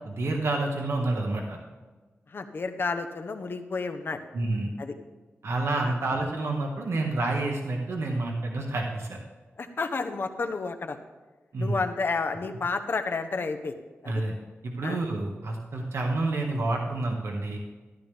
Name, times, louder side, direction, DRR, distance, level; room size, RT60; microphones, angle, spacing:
voice 1, 0.0-1.6 4.3-4.7 5.4-9.2 11.5-11.7 14.0-14.3 14.6-17.6, right 2 dB, 75° right, 0 dB, 1.7 m, -28 dB
voice 2, 2.3-4.2 4.8-4.9 5.8-5.9 9.6-11.0 11.6-13.7 14.0-14.1 14.8-15.0, left 4 dB, 50° left, 6 dB, 1.0 m, -31 dB
13.5 x 12.0 x 3.5 m, 1.3 s
wide cardioid pair, 130°, 5 cm